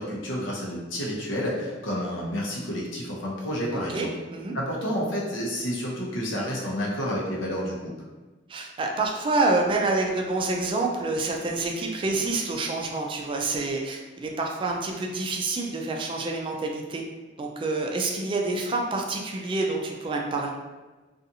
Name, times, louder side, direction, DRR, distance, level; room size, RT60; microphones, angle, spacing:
voice 1, 0.0-4.1 4.5-8.0, equal, 90° left, -3 dB, 0.7 m, -30 dB
voice 2, 3.7-4.5 8.5-17.0 17.4-20.5, right 3 dB, 25° right, 1 dB, 0.3 m, -27 dB
2.6 x 2.4 x 2.7 m, 1.2 s
head